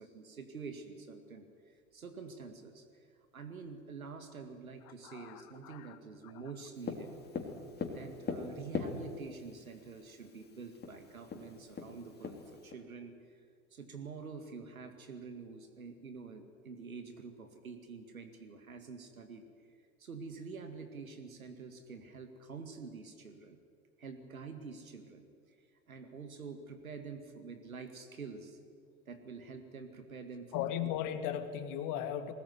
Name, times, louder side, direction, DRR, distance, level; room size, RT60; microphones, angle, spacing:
voice 1, 0.0-2.9 3.3-7.2 7.9-13.4 13.7-19.4 20.0-23.6 24.0-25.3 25.9-28.6 29.1-30.9, right 5 dB, 85° right, 7 dB, 2.1 m, -47 dB
voice 2, 5.0-6.0 30.5-32.3, left 10 dB, 50° left, 9 dB, 2.1 m, -37 dB
Tap, 6.9-9.4 10.4-10.5 10.8-10.9 11.3-12.7, left 4 dB, 25° left, 3.4 m, -39 dB
20.5 x 19.0 x 9.5 m, 2.1 s
figure-of-eight pair, 80°, 41 cm